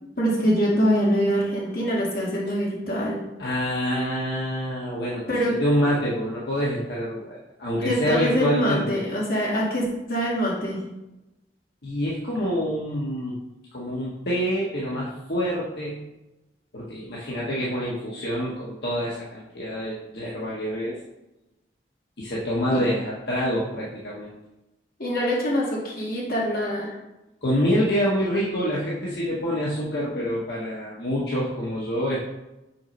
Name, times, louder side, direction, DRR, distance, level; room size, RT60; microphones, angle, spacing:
voice 1, 0.2-3.2 5.3-5.6 7.8-10.8 22.7-22.9 25.0-26.9, equal, 55° left, -5 dB, 2.2 m, -24 dB
voice 2, 3.4-9.0 11.8-13.4 13.7-16.0 16.7-21.0 22.2-24.3 27.4-32.2, equal, 75° left, -6 dB, 1.3 m, -26 dB
5.9 x 4.5 x 5.2 m, 0.97 s
head